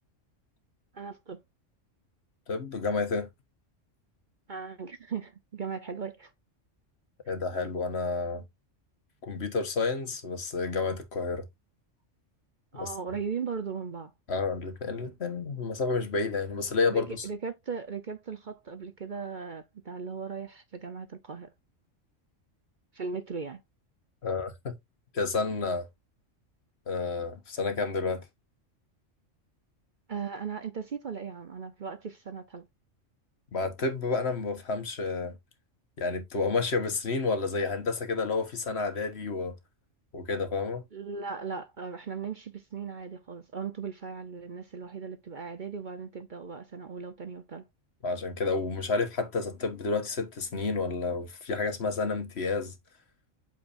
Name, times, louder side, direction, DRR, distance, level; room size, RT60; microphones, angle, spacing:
voice 1, 0.9-1.4 4.5-6.3 12.7-14.1 16.9-21.5 22.9-23.6 30.1-32.7 40.9-47.6, right 5 dB, 45° right, 0.9 m, -37 dB
voice 2, 2.5-3.3 7.3-8.4 9.2-11.5 12.8-12.9 14.3-17.3 24.2-24.8 25.1-25.9 26.9-28.2 33.5-35.4 36.0-39.6 40.1-40.8 48.0-52.7, left 4 dB, 55° left, 1.5 m, -30 dB
8.5 x 6.2 x 2.6 m
omnidirectional pair, 1.3 m